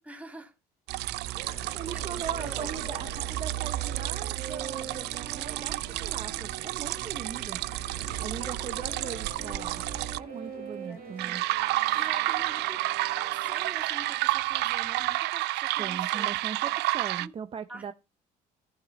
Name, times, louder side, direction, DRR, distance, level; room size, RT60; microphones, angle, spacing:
voice 1, 0.1-0.5 1.4-2.8 8.0-8.3 10.8-12.8 13.1-16.3 17.2-17.3 17.7-17.9, right 2 dB, 10° right, 2.7 m, -47 dB
sound 1, 0.9-10.2 11.2-17.3, right 18 dB, 85° right, 0.5 m, -31 dB
sound 2, 1.3-15.2, left 8 dB, 65° left, 1.4 m, -49 dB
voice 2, 1.3-7.6 8.2-9.8 10.2-11.4 15.8-17.9, right 7 dB, 35° right, 0.7 m, -40 dB
Bowed string instrument, 2.2-14.0, right 9 dB, 55° right, 1.2 m, -45 dB
14.5 x 6.0 x 4.0 m
cardioid pair, 110°, 17 cm